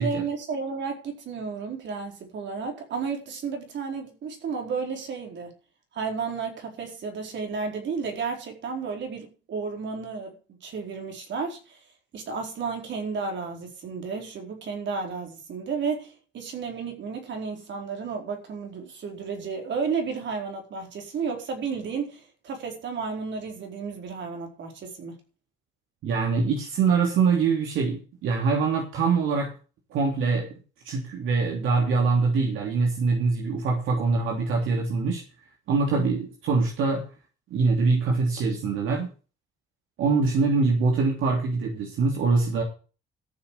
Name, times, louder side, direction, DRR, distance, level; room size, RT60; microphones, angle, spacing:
voice 1, 0.0-5.5 5.9-10.3 10.6-11.8 12.1-25.2, right 5 dB, 65° right, 4.6 m, -32 dB
voice 2, 26.0-29.5 29.9-30.5 30.8-35.2 35.7-37.0 37.5-39.1 40.0-42.6, right 4 dB, 80° right, 3.2 m, -24 dB
14.0 x 7.0 x 6.7 m
cardioid pair, 90°, 20 cm